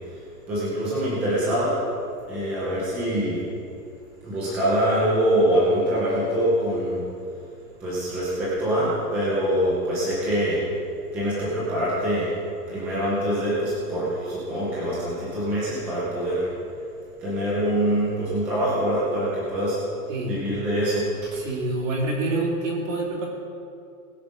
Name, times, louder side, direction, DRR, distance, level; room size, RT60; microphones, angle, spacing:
voice 1, 0.5-1.8 2.3-3.4 4.2-7.1 7.8-10.6 11.1-12.3 12.7-16.5 17.2-19.8 20.2-21.3, equal, 5° right, -8 dB, 0.6 m, -24 dB
voice 2, 21.3-23.3, right 2 dB, 50° right, -2 dB, 3.7 m, -27 dB
19.5 x 6.6 x 5.2 m, 2.5 s
hypercardioid pair, 170°, 47 cm